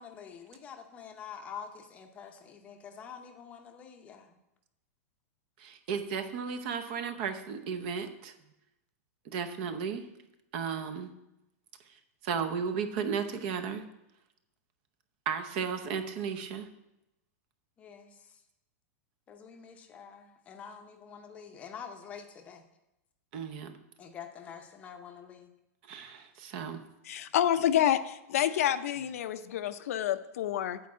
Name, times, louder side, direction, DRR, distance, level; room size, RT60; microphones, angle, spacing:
voice 1, 0.0-4.3 17.8-18.1 19.3-22.6 24.0-25.5, left 7 dB, 15° left, 5 dB, 0.7 m, -46 dB
voice 2, 5.6-8.3 9.2-10.1 10.5-11.1 12.2-13.8 15.3-16.7 23.3-23.7 25.8-26.8, right 6 dB, 40° right, 8 dB, 0.7 m, -34 dB
voice 3, 27.1-30.8, left 11 dB, 65° left, 11 dB, 0.5 m, -28 dB
8.4 x 4.6 x 7.4 m, 0.90 s
supercardioid pair, 170°, 8 cm